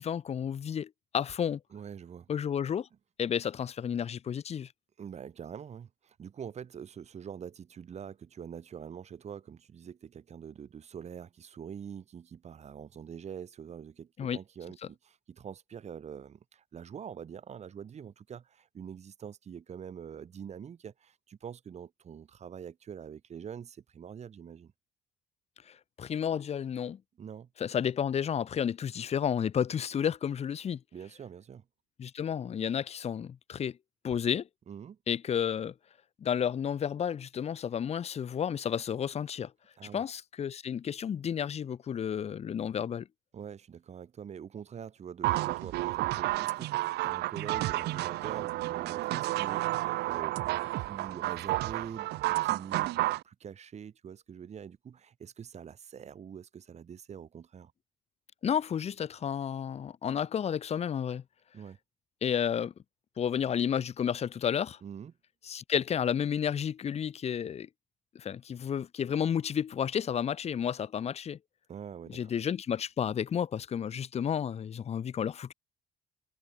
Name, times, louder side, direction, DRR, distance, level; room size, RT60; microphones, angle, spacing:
voice 1, 0.0-1.6 2.3-2.9 3.2-4.7 14.2-14.4 25.7-27.0 27.6-30.8 32.0-33.8 34.0-34.5 35.1-35.7 36.2-39.5 39.9-43.1 58.4-61.2 62.2-62.7 63.2-64.8 65.5-67.7 68.1-71.4 72.1-75.5, left 8 dB, 40° left, 1.0 m, -31 dB
voice 2, 1.7-2.3 5.0-24.7 27.2-27.5 30.9-31.6 34.7-35.0 39.8-40.1 43.3-46.7 47.0-57.7 61.5-61.8 64.8-65.1 71.7-72.3, right 8 dB, 40° right, 2.3 m, -45 dB
sound 1, 45.2-53.2, right 18 dB, 80° right, 0.9 m, -31 dB
cardioid pair, 110°, 17 cm